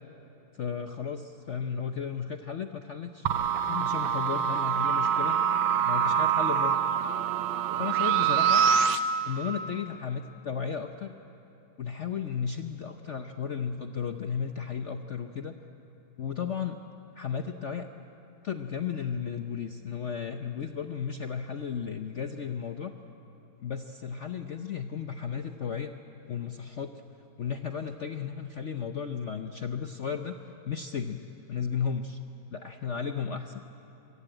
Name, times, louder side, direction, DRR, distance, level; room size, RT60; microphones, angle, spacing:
voice 1, 0.5-3.3 3.7-5.4 5.8-6.8 7.8-8.6 9.3-11.2 11.8-15.5 16.2-16.8 17.1-17.9 18.4-22.9 23.6-25.9 26.3-26.9 27.4-30.4 30.7-31.2 31.5-32.2 32.5-33.6, left 7 dB, 55° left, 6 dB, 0.8 m, -34 dB
sound 1, 3.3-9.0, right 8 dB, 90° right, 1.7 m, -25 dB
24.0 x 23.5 x 8.9 m, 2.9 s
omnidirectional pair, 2.1 m